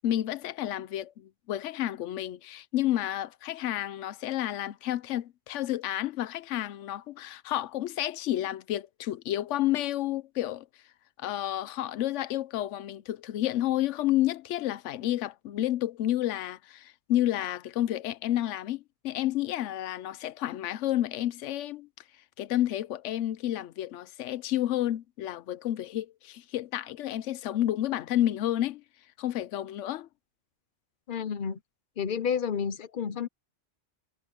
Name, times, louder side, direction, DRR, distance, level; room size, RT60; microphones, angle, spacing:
voice 1, 0.0-10.6 11.2-21.9 22.4-28.8 29.2-30.1, left 13 dB, 85° left, 0.9 m, -30 dB
voice 2, 31.1-31.6 32.0-33.3, left 7 dB, 50° left, 0.9 m, -30 dB
omnidirectional pair, 1.2 m